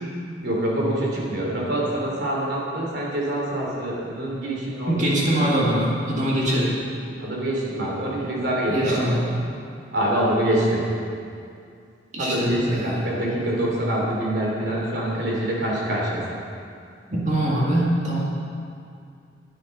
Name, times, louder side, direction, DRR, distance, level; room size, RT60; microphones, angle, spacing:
voice 1, 0.4-5.5 7.2-9.1 9.9-10.9 12.2-16.4, right 1 dB, 60° right, -3 dB, 3.1 m, -25 dB
voice 2, 4.9-7.0 8.7-9.3 12.1-13.0 17.1-18.2, right 1 dB, 40° right, -5 dB, 1.9 m, -23 dB
12.0 x 9.9 x 5.4 m, 2.4 s
head